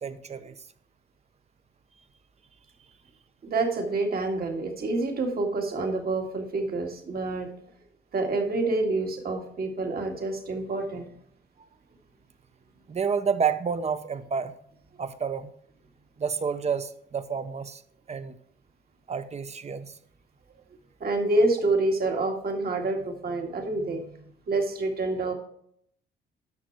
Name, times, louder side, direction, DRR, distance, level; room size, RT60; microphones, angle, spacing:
voice 1, 0.0-0.6 12.9-14.5 15.0-15.5 16.2-17.8 18.1-18.4 19.1-19.9, right 6 dB, 35° right, 11 dB, 0.9 m, -29 dB
voice 2, 3.4-7.5 8.1-11.1 21.0-24.1 24.5-25.3, right 2 dB, 50° right, 3 dB, 2.1 m, -27 dB
11.0 x 6.2 x 4.7 m, 0.68 s
cardioid pair, 90°, 20 cm